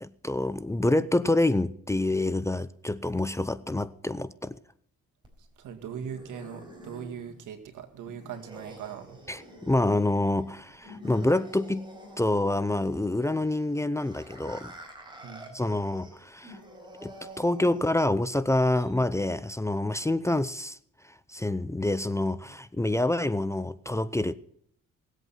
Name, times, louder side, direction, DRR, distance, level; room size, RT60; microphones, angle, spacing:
voice 1, 0.0-4.6 9.3-11.9 12.2-14.7 15.5-16.6 17.0-20.8 21.3-24.3, left 2 dB, 10° left, 15 dB, 0.6 m, -27 dB
sound 1, 5.2-18.2, equal, 15° right, 4.6 m, -48 dB
voice 2, 5.4-9.2 15.2-15.6, right 7 dB, 80° right, 6 dB, 2.2 m, -40 dB
19.0 x 8.2 x 5.8 m, 0.65 s
cardioid pair, 90°, 30 cm